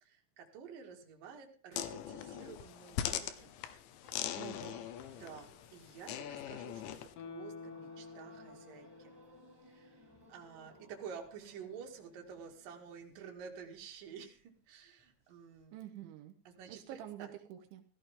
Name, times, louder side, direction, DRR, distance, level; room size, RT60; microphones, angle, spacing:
voice 1, 0.0-3.5 5.1-9.1 9.7-10.0 10.3-15.8 16.5-17.3, right 6 dB, 55° right, 2 dB, 3.6 m, -50 dB
sound 1, 1.7-7.1, left 11 dB, 85° left, 3.4 m, -41 dB
sound 2, 4.0-14.1 14.3-14.6 15.0-15.6, equal, 5° right, 5.2 m, -63 dB
voice 2, 4.4-4.9 15.7-16.3 16.7-17.8, right 11 dB, 85° right, 5 dB, 3.4 m, -47 dB
Guitar, 7.1-10.4 10.8-10.9, left 4 dB, 60° left, 3.2 m, -51 dB
16.0 x 15.0 x 3.7 m, 0.38 s
omnidirectional pair, 5.2 m